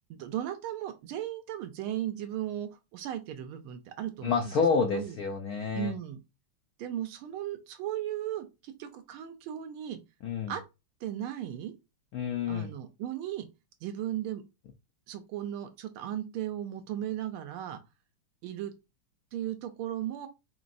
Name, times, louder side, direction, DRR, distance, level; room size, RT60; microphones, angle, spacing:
voice 1, 0.1-4.5 4.9-5.2 5.7-6.2 6.8-10.0 10.5-10.6 11.0-11.7 12.5-13.5 13.8-14.4 15.1-17.8 18.4-18.7 19.3-20.3, right 11 dB, 80° right, 1.5 m, -36 dB
voice 2, 4.2-5.9 10.2-10.5 12.1-12.7, left 5 dB, 75° left, 0.8 m, -28 dB
4.5 x 3.1 x 2.6 m
omnidirectional pair, 2.4 m